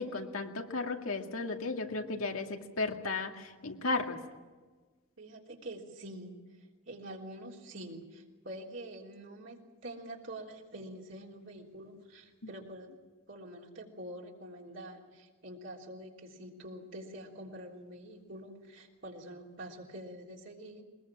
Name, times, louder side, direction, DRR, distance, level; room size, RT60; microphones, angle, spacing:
voice 1, 0.0-4.2, left 3 dB, 85° left, 3 dB, 2.2 m, -34 dB
voice 2, 5.2-12.9 13.3-20.8, right 1 dB, 60° right, -1 dB, 3.5 m, -46 dB
22.5 x 21.0 x 7.5 m, 1.3 s
head